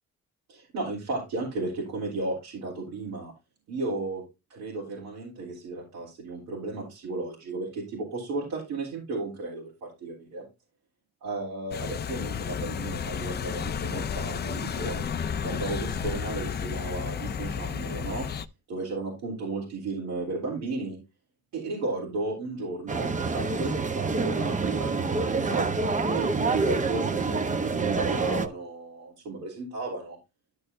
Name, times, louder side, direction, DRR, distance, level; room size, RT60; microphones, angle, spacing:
voice 1, 0.5-3.3 3.7-4.2 4.5-10.5 11.2-15.1 15.4-18.3 18.7-21.0 21.5-25.7 26.1-30.2, right 3 dB, 85° right, -4 dB, 3.2 m, -34 dB
sound 1, 11.7-18.5, left 7 dB, 35° left, 0.5 m, -32 dB
sound 2, 22.9-28.5, right 4 dB, 25° right, 0.8 m, -27 dB
12.5 x 6.5 x 2.6 m, 0.25 s
cardioid pair, 90°, 30 cm